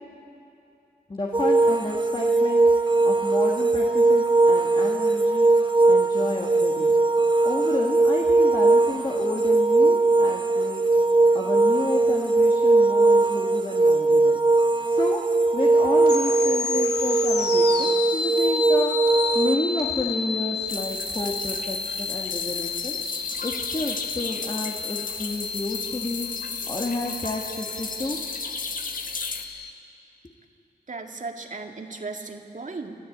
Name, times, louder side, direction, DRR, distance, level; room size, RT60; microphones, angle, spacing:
voice 1, 1.1-2.6 3.0-5.5 5.9-7.0 7.4-10.9 11.3-14.4 14.9-15.2 15.5-23.0 23.4-26.3 26.7-28.2, left 2 dB, 30° left, -1 dB, 1.9 m, -31 dB
sound 1, 1.3-19.6, right 3 dB, 30° right, 1.4 m, -20 dB
sound 2, 16.0-29.7, left 5 dB, 85° left, 1.1 m, -31 dB
sound 3, 20.7-29.4, left 4 dB, 55° left, 1.6 m, -34 dB
voice 2, 30.9-33.0, right 3 dB, 50° right, 3 dB, 2.1 m, -36 dB
29.0 x 12.5 x 8.7 m, 2.8 s
cardioid pair, 60°, 17 cm